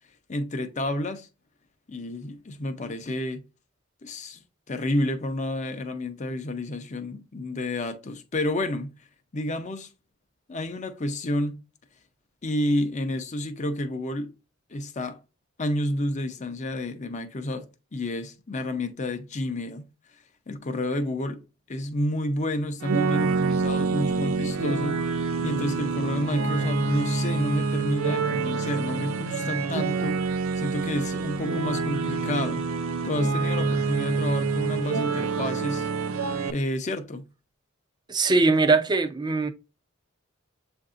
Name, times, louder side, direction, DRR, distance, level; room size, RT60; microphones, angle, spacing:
voice 1, 0.3-1.3 1.9-3.4 4.0-4.4 4.7-8.9 9.3-9.9 10.5-11.6 12.4-14.3 14.7-15.2 15.6-19.8 20.5-21.4 21.7-25.1 25.4-30.2 30.6-32.7 33.0-35.9 36.5-37.2, left 1 dB, 35° left, 0.6 m, -30 dB
sound 1, 22.8-36.5, right 4 dB, 80° right, 0.6 m, -27 dB
voice 2, 38.1-39.5, right 3 dB, 20° right, 0.5 m, -21 dB
7.6 x 2.6 x 2.4 m
head